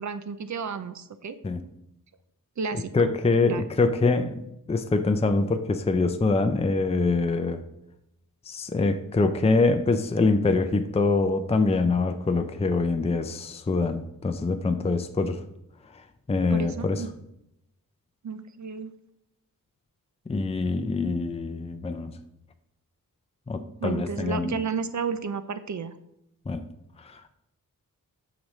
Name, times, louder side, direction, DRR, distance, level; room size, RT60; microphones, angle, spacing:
voice 1, 0.0-1.4 2.6-3.1 3.5-3.6 16.5-17.1 18.2-18.9 23.8-26.0, right 5 dB, 55° right, 12 dB, 0.6 m, -32 dB
voice 2, 2.7-4.4 4.7-7.6 8.5-15.4 15.9-17.1 20.3-22.1 23.5-24.6 26.5-26.6 27.0-27.3, left 3 dB, 20° left, 7 dB, 0.5 m, -25 dB
13.5 x 5.0 x 3.2 m, 0.83 s
wide cardioid pair, 100°, 34 cm